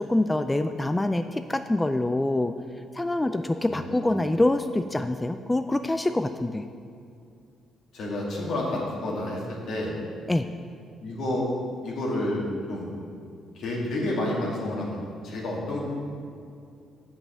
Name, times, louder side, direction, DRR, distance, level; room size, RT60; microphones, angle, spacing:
voice 1, 0.0-2.5 2.9-6.6 10.3-10.5, left 1 dB, 15° left, 8 dB, 0.3 m, -25 dB
voice 2, 3.7-4.2 7.9-9.4 9.7-9.9 11.0-11.4 11.8-12.4 12.7-12.9 13.6-15.0 15.2-15.8, left 1 dB, 70° left, -3 dB, 2.4 m, -29 dB
8.0 x 5.7 x 7.2 m, 2.4 s
cardioid pair, 90°, 0 cm